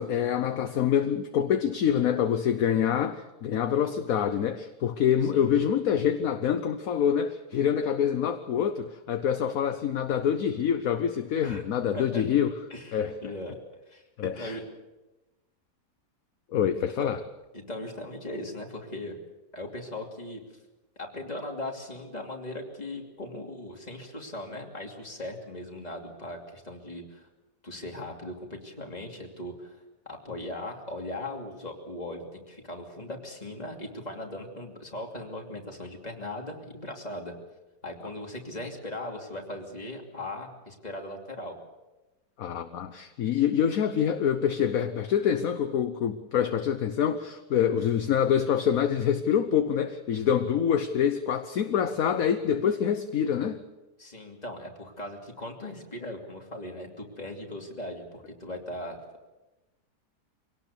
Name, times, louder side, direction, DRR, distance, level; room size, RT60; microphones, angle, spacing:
voice 1, 0.0-12.5 12.9-13.2 14.2-14.6 16.5-17.2 42.4-53.6, left 8 dB, 60° left, 9 dB, 1.2 m, -26 dB
voice 2, 12.7-13.6 13.9-14.6 17.0-17.1 17.5-19.2 19.5-20.4 21.0-27.3 27.6-37.3 37.8-41.6 54.0-59.0, left 1 dB, 25° left, 1 dB, 2.9 m, -39 dB
24.0 x 18.0 x 6.8 m, 1.1 s
omnidirectional pair, 1.8 m